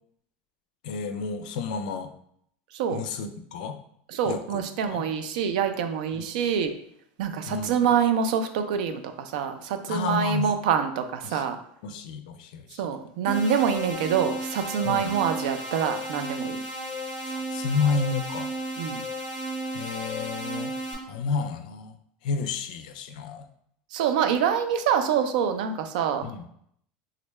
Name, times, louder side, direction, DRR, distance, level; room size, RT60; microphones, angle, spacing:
voice 1, 0.8-2.1 2.9-3.8 4.2-5.0 6.1-6.3 7.5-7.9 9.9-10.5 11.2-11.4 11.8-12.8 14.8-15.1 17.2-18.5 19.7-20.7 21.1-22.0 22.2-23.5 26.2-26.5, left 5 dB, 80° left, 9 dB, 0.4 m, -31 dB
voice 2, 4.1-6.7 7.2-11.6 12.8-16.6 18.8-19.0 23.9-26.2, right 7 dB, 75° right, 8 dB, 0.4 m, -26 dB
sound 1, 13.3-20.9, right 1 dB, 40° right, 1.2 m, -34 dB
3.7 x 2.2 x 3.1 m, 0.70 s
supercardioid pair, 165°, 4 cm